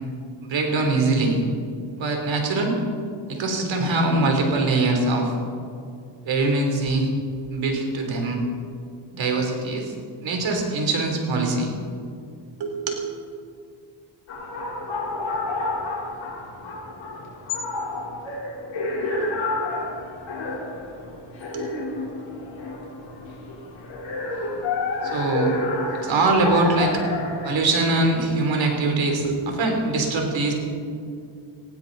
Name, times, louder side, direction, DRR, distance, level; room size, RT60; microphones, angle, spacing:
voice 1, 0.4-1.4 2.0-2.7 3.3-5.3 6.3-7.1 7.5-8.4 9.1-9.9 10.2-11.7 12.6-13.0 21.5-21.7 25.0-25.5 26.0-27.0 27.4-30.5, right 2 dB, 75° right, 2 dB, 3.5 m, -22 dB
sound 1, 14.3-27.6, left 2 dB, 70° left, 4.0 m, -29 dB
19.5 x 16.0 x 4.1 m, 2.3 s
cardioid pair, 100°, 46 cm